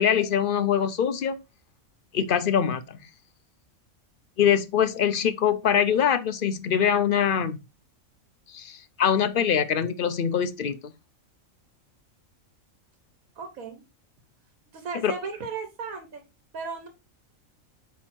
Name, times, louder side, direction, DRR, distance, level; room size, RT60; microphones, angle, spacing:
voice 1, 0.0-1.4 2.1-3.0 4.4-7.6 8.5-10.8 15.0-15.1, left 8 dB, 55° left, 0.6 m, -23 dB
voice 2, 13.4-13.8 14.7-16.2 16.5-16.9, right 5 dB, 80° right, 1.6 m, -35 dB
8.6 x 3.6 x 4.3 m
omnidirectional pair, 1.4 m